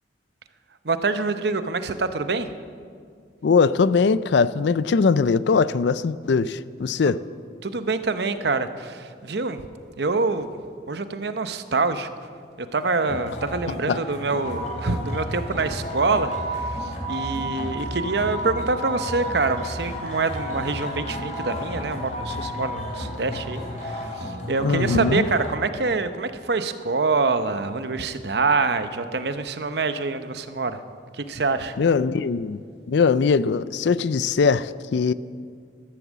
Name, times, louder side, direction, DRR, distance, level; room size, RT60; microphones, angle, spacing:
voice 1, 0.8-2.5 7.0-7.1 7.6-9.7 10.0-10.5 10.9-12.1 12.6-16.3 16.6-30.8 31.1-31.7, right 3 dB, 60° right, 0.8 m, -25 dB
voice 2, 3.4-7.2 13.9-14.0 24.6-25.3 31.8-32.6 32.9-35.1, left 5 dB, 70° left, 0.4 m, -21 dB
sound 1, 12.9-25.5, equal, 40° left, 2.8 m, -32 dB
13.5 x 12.5 x 7.3 m
head